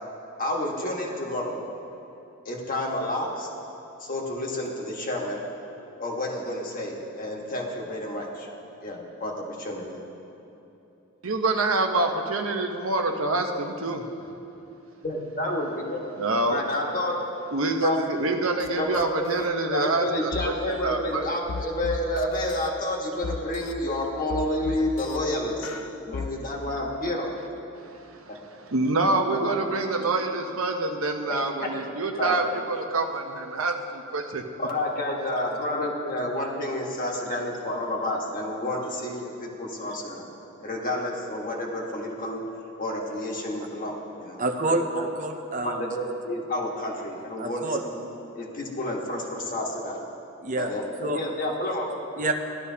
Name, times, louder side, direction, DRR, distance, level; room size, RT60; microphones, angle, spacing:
voice 1, 0.4-1.7 2.4-3.5 4.0-5.4 6.0-8.5 8.8-9.8 15.0-16.0 16.5-17.2 17.8-18.0 18.8-19.1 19.3-19.5 19.7-25.7 26.0-27.3 29.4-29.5 32.2-32.4 34.6-40.2 40.6-42.4 42.8-44.4 44.7-44.8 45.6-48.0 48.3-50.0 50.6-51.9, left 1 dB, 40° left, -1 dB, 1.5 m, -30 dB
voice 2, 11.2-14.0 16.2-16.7 17.5-21.2 27.7-34.4, right 2 dB, 75° right, 3 dB, 0.9 m, -26 dB
sound 1, 18.6-18.7 18.9-19.5 20.3-20.5 21.5-22.7 23.2-23.7 24.3-25.2 25.6-26.3, left 4 dB, 85° left, 0.5 m, -34 dB
voice 3, 44.4-45.9 47.4-47.8 50.4-51.2 52.2-52.3, right 2 dB, 40° right, 5 dB, 0.6 m, -28 dB
16.5 x 11.5 x 2.8 m, 2.9 s
head